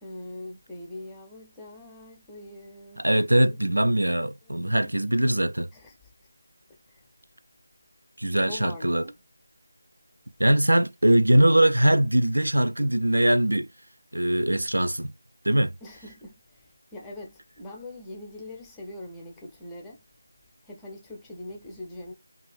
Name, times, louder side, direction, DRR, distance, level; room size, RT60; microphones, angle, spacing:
voice 1, 0.0-3.1 5.7-6.0 6.9-7.1 8.5-9.2 15.8-20.0 20.6-22.1, left 1 dB, 10° left, 0.5 m, -42 dB
voice 2, 3.0-5.7 8.2-9.1 10.4-13.7 14.1-15.1 15.4-15.8, right 1 dB, 90° right, 0.3 m, -21 dB
2.5 x 2.4 x 3.3 m
figure-of-eight pair, 165°, 0 cm